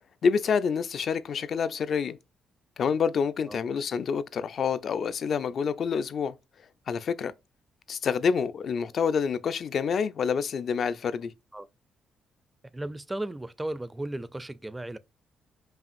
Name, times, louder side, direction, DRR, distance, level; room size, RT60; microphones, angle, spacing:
voice 1, 0.2-2.2 2.8-6.3 6.9-7.3 7.9-11.3, left 6 dB, 55° left, 0.4 m, -27 dB
voice 2, 12.7-15.0, right 1 dB, 10° right, 0.4 m, -35 dB
5.5 x 2.4 x 2.5 m
cardioid pair, 90°, 0 cm